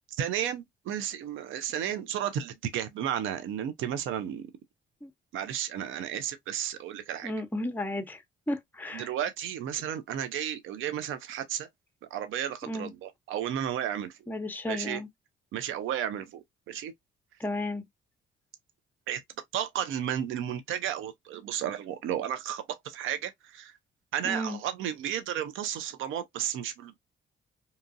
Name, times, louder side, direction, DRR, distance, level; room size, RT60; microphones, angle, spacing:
voice 1, 0.2-4.5 5.3-7.3 8.9-11.7 12.1-14.2 14.7-15.0 15.5-16.9 19.1-19.2 19.5-23.7 24.1-27.0, right 10 dB, 80° right, 0.5 m, -33 dB
voice 2, 7.2-9.1 12.7-12.9 14.3-15.1 17.4-17.8 24.2-24.6, left 1 dB, 10° left, 0.7 m, -33 dB
2.8 x 2.5 x 2.4 m
cardioid pair, 90°, 20 cm